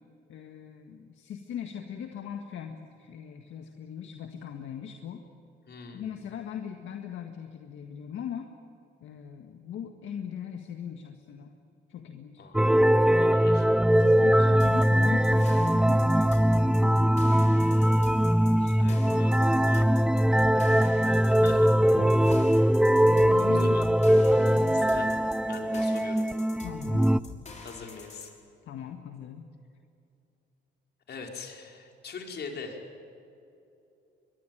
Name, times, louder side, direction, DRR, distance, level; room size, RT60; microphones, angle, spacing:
voice 1, 0.3-5.2 5.9-8.5 9.0-11.5 11.9-12.4 13.9-17.1 18.5-18.9 22.0-22.5 23.1-23.8 24.5-25.0 26.6-27.1 28.7-29.5, left 8 dB, 75° left, 5 dB, 1.8 m, -40 dB
voice 2, 5.7-6.2 12.4-12.7 13.1-14.7 18.8-21.9 23.5-23.9 24.7-25.1 25.5-26.3 27.6-28.3 31.1-32.8, left 4 dB, 55° left, 2 dB, 4.9 m, -43 dB
sound 1, 12.5-27.2, equal, 5° right, 0.5 m, -22 dB
sound 2, 14.6-28.3, left 3 dB, 35° left, 5.8 m, -46 dB
23.0 x 22.5 x 9.2 m, 2.7 s
cardioid pair, 90°, 20 cm